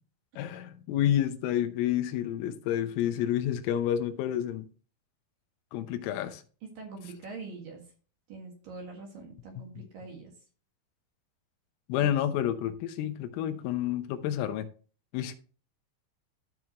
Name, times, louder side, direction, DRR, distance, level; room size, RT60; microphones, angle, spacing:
voice 1, 0.4-4.7 5.7-6.4 9.6-9.9 11.9-14.7 15.1-15.4, left 11 dB, 85° left, 3.4 m, -29 dB
voice 2, 6.6-7.8 8.3-10.3 12.0-12.1, right 4 dB, 60° right, 2.8 m, -44 dB
14.0 x 6.1 x 3.0 m
omnidirectional pair, 5.7 m